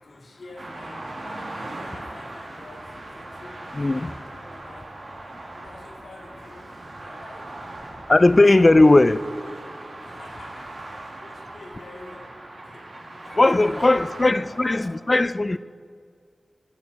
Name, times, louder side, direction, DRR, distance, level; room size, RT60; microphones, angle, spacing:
voice 1, 0.0-5.0 5.5-8.5 8.8-9.1 9.4-15.2, left 2 dB, 85° left, 2.2 m, -47 dB
sound 1, 0.6-14.8, right 2 dB, 60° right, 1.7 m, -39 dB
voice 2, 3.7-4.1 8.1-9.2 13.4-15.6, left 2 dB, 35° left, 0.4 m, -17 dB
13.5 x 7.2 x 6.6 m
wide cardioid pair, 75°, 0 cm